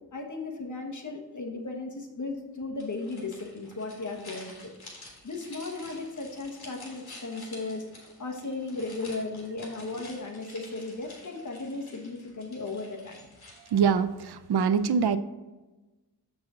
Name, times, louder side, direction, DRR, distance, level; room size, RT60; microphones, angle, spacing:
voice 1, 0.1-4.7 5.2-13.3, left 3 dB, 50° left, 2 dB, 1.3 m, -36 dB
sound 1, 2.8-14.0, left 2 dB, 70° left, 2.6 m, -49 dB
voice 2, 13.7-15.2, right 6 dB, 75° right, 13 dB, 0.5 m, -24 dB
7.5 x 6.2 x 3.7 m, 1.1 s
wide cardioid pair, 105°, 39 cm